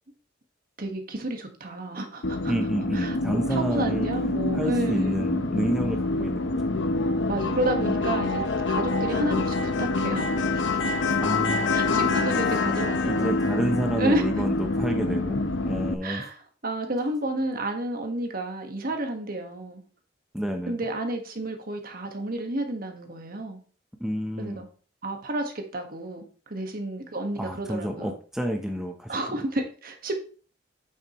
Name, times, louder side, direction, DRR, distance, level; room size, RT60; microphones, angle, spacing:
voice 1, 0.8-2.5 2.9-5.3 7.3-10.9 11.7-13.3 14.0-14.3 16.0-16.4 16.6-19.8 20.7-23.6 24.4-24.7 25.0-28.1 29.1-30.2, right 1 dB, 50° right, 4 dB, 1.5 m, -31 dB
sound 1, 2.2-15.9, left 2 dB, 80° left, 0.9 m, -26 dB
voice 2, 2.4-4.1 4.5-6.7 11.2-12.1 13.0-16.3 20.3-20.8 24.0-24.6 27.4-29.2, equal, 5° right, 3 dB, 0.8 m, -30 dB
8.8 x 7.3 x 3.1 m, 0.38 s
head